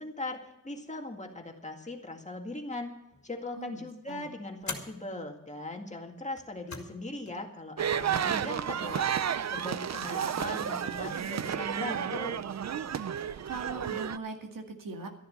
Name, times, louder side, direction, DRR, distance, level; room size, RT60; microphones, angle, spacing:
voice 1, 0.0-2.9 3.2-9.1 9.5-12.4, left 2 dB, 20° left, 3 dB, 2.0 m, -39 dB
sound 1, 3.1-3.5 4.6-5.0 6.3-7.0 7.3-7.4 8.4-9.0, left 4 dB, 55° left, 2.2 m, -42 dB
voice 2, 3.6-4.3 10.1-10.4 13.4-15.1, right 4 dB, 85° right, 3 dB, 2.1 m, -40 dB
sound 2, 7.8-14.2, right 8 dB, 55° right, 0.5 m, -32 dB
13.0 x 11.0 x 6.5 m, 0.90 s
wide cardioid pair, 125°, 32 cm